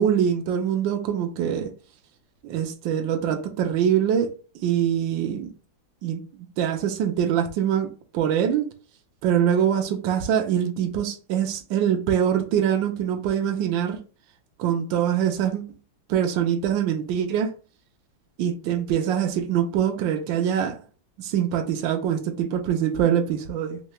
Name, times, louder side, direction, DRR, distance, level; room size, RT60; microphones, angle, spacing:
voice 1, 0.0-1.7 2.4-4.3 4.6-5.5 6.0-6.2 6.6-8.7 9.2-14.0 14.6-15.6 16.1-17.5 18.4-20.8 21.2-23.8, right 9 dB, 75° right, 1.3 m, -24 dB
3.8 x 3.2 x 3.0 m
omnidirectional pair, 2.3 m